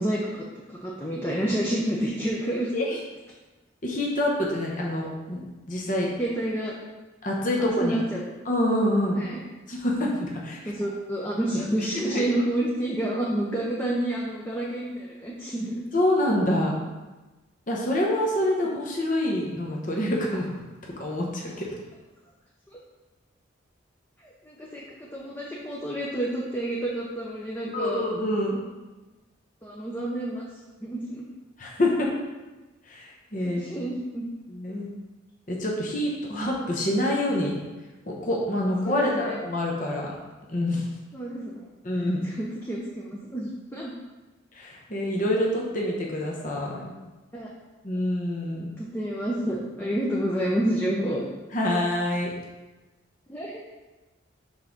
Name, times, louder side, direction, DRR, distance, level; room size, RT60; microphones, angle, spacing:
voice 1, 0.0-2.7 6.2-6.7 7.6-8.2 9.1-9.4 10.7-15.8 22.7-22.8 24.2-28.0 29.6-30.4 30.8-31.2 33.4-34.2 38.8-39.4 41.1-41.7 42.0-43.9 47.3-47.5 48.8-51.2 53.3-53.6, right 1 dB, 10° left, -4 dB, 0.6 m, -29 dB
voice 2, 3.8-6.1 7.2-8.0 8.4-9.2 9.7-10.7 12.0-12.4 15.9-16.7 17.7-20.5 20.8-21.7 27.7-28.6 31.6-32.1 32.9-33.9 34.5-34.9 35.5-37.6 38.1-40.1 40.5-40.9 41.8-42.2 44.5-46.9 47.8-48.7 51.5-52.3, left 1 dB, 40° left, -2 dB, 0.9 m, -26 dB
5.5 x 3.9 x 5.9 m, 1.2 s
head